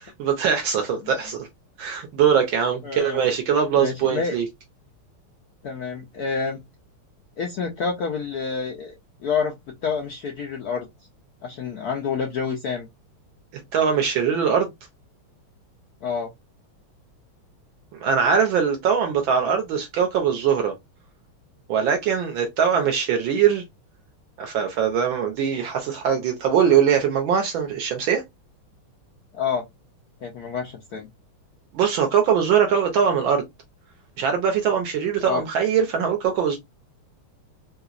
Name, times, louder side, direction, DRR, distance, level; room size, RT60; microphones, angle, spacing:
voice 1, 0.0-1.5 1.8-4.5 13.7-14.7 18.0-20.7 21.7-23.6 24.4-28.2 31.7-33.4 34.2-36.6, right 7 dB, 70° right, 1.4 m, -21 dB
voice 2, 2.8-3.2 3.8-4.4 5.6-6.6 7.4-9.0 9.2-10.9 11.4-12.9 16.0-16.3 29.3-29.7 30.2-31.1 35.2-35.4, left 5 dB, 75° left, 0.8 m, -28 dB
3.8 x 2.9 x 2.4 m
omnidirectional pair, 2.4 m